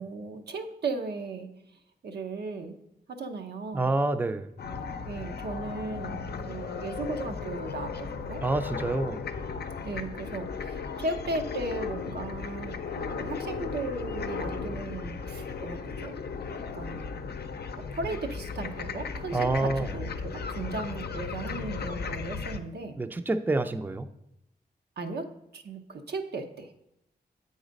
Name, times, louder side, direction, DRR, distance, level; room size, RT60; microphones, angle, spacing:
voice 1, 0.0-1.5 2.0-2.8 3.1-3.9 5.0-8.4 9.8-16.1 16.7-17.2 17.8-23.0 25.0-25.3 25.5-26.7, right 3 dB, 85° right, 5 dB, 0.8 m, -36 dB
voice 2, 3.7-4.5 8.4-9.3 19.3-19.9 23.0-24.1, right 2 dB, 10° right, 9 dB, 0.4 m, -27 dB
sound 1, 4.6-22.6, left 5 dB, 75° left, 0.5 m, -36 dB
7.9 x 4.0 x 5.1 m, 0.84 s
wide cardioid pair, 75°, 17 cm